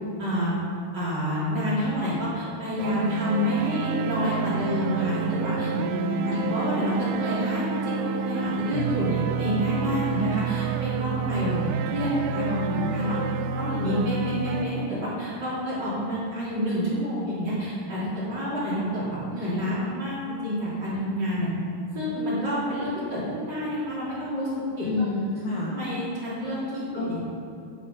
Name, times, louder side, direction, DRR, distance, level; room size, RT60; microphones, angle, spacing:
voice 1, 0.2-0.5 0.9-5.7 6.2-11.6 11.8-13.2 13.6-21.5 21.9-24.5 24.8-24.9 25.7-26.8 27.1-27.2, equal, 30° right, -9 dB, 2.9 m, -28 dB
sound 1, 2.8-14.6, right 6 dB, 85° right, 2.5 m, -29 dB
voice 2, 5.8-6.4 12.5-13.0 24.8-25.7 26.9-27.0, left 3 dB, 75° left, -5 dB, 1.2 m, -30 dB
10.0 x 7.3 x 5.6 m, 2.6 s
omnidirectional pair, 4.4 m